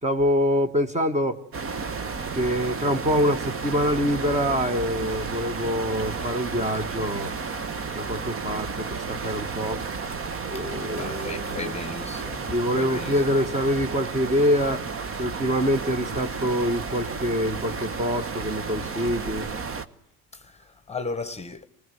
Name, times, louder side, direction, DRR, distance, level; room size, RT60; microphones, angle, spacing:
voice 1, 0.0-1.4 2.3-7.3 7.9-9.8 10.5-11.8 12.5-14.9 15.2-19.5, equal, 20° right, 1.9 m, -25 dB
sound 1, 1.5-19.9, right 4 dB, 35° right, 1.4 m, -32 dB
voice 2, 10.5-13.2 20.3-21.7, left 4 dB, 15° left, 1.3 m, -36 dB
26.5 x 20.5 x 9.4 m
supercardioid pair, 95°, 37 cm